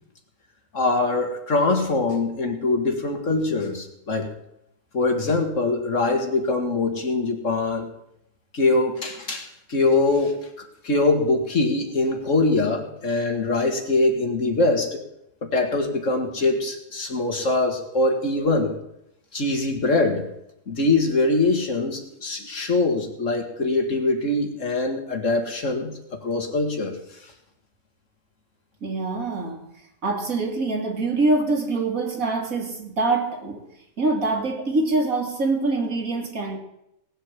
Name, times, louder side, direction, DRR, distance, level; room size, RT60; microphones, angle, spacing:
voice 1, 0.7-4.3 4.9-7.9 8.5-10.5 10.8-15.0 15.4-18.8 19.3-20.3 20.7-25.9 26.2-27.0, left 2 dB, 60° left, 4 dB, 2.4 m, -23 dB
voice 2, 28.8-29.7 30.0-33.7 34.0-36.6, right 3 dB, 70° right, 2 dB, 2.9 m, -24 dB
18.5 x 8.2 x 7.5 m, 0.81 s
omnidirectional pair, 1.5 m